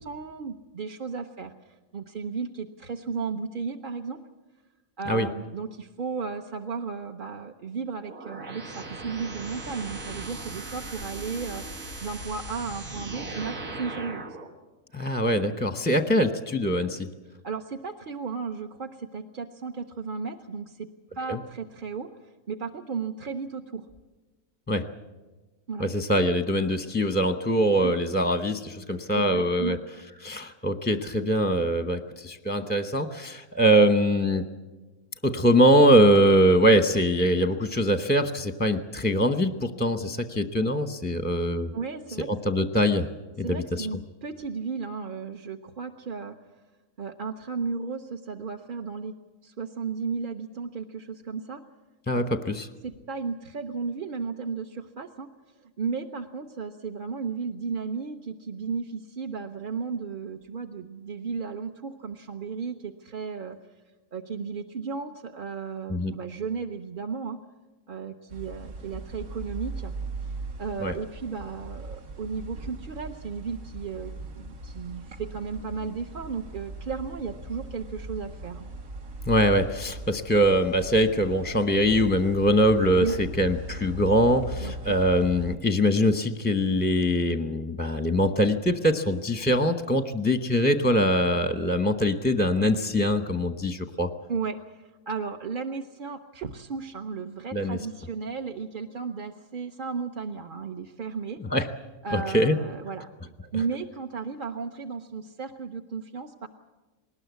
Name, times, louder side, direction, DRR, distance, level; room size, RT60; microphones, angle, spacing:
voice 1, 0.0-4.2 5.0-14.2 15.1-15.4 17.4-23.9 25.7-25.9 27.8-27.9 29.1-29.8 41.7-42.3 43.4-46.4 47.0-49.2 49.4-51.6 52.1-52.3 52.8-63.6 64.1-67.4 67.9-69.9 70.2-70.3 70.6-78.7 83.0-83.2 84.6-85.0 94.3-101.4 102.0-103.1 103.5-106.5, right 5 dB, 45° right, 4 dB, 0.8 m, -34 dB
sound 1, 8.1-14.5, right 2 dB, 85° right, 2.5 m, -38 dB
voice 2, 14.9-17.1 21.3-21.4 24.7-24.9 25.8-29.8 30.2-34.5 35.2-41.7 42.3-43.1 43.4-43.9 52.1-52.7 65.9-66.1 70.8-70.9 79.3-94.1 97.5-97.8 101.5-101.7 102.1-102.6, equal, 10° left, 8 dB, 0.7 m, -23 dB
sound 2, 68.3-85.6, right 1 dB, 70° right, 1.9 m, -39 dB
20.5 x 19.0 x 8.2 m, 1.2 s
omnidirectional pair, 1.5 m